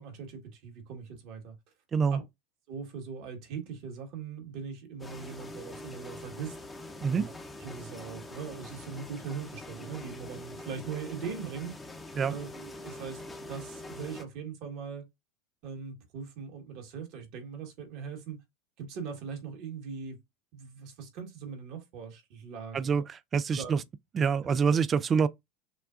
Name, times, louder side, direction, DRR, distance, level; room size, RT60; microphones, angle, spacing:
voice 1, 0.0-1.5 2.1-2.2 2.7-6.5 7.1-7.3 7.6-11.8 12.3-13.2 13.5-15.0 15.6-18.4 18.8-20.2 20.5-23.0 23.5-23.7, right 6 dB, 60° right, 1.6 m, -40 dB
sound 1, 5.0-14.2, left 2 dB, 15° left, 0.9 m, -44 dB
voice 2, 22.7-23.8 24.1-25.3, right 6 dB, 30° right, 0.4 m, -26 dB
6.0 x 2.2 x 2.5 m
hypercardioid pair, 90°, 0 cm